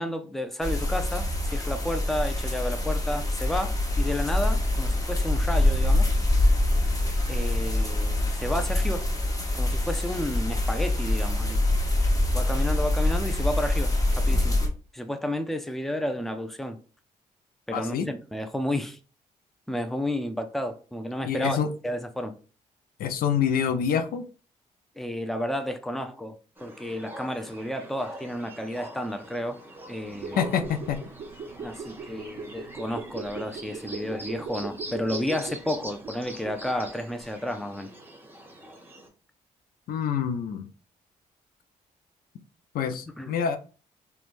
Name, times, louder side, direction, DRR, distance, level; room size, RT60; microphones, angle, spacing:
voice 1, 0.0-6.1 7.3-9.1 9.5-11.6 12.3-14.6 14.9-16.8 17.7-19.0 19.7-21.6 21.8-22.3 25.0-29.6 29.9-30.5 31.6-37.9 43.2-43.3, left 1 dB, ahead, 0.5 m, -31 dB
sound 1, 0.6-14.7, left 1 dB, 20° left, 1.0 m, -25 dB
voice 2, 17.7-18.1 21.2-21.7 23.0-24.2 30.4-31.0 39.9-40.7 42.7-43.6, left 7 dB, 70° left, 0.4 m, -26 dB
sound 2, 26.6-39.1, right 1 dB, 15° right, 0.9 m, -44 dB
sound 3, 30.1-36.9 37.2-37.3, right 4 dB, 50° right, 0.5 m, -39 dB
3.0 x 2.2 x 2.5 m
supercardioid pair, 55°, 16 cm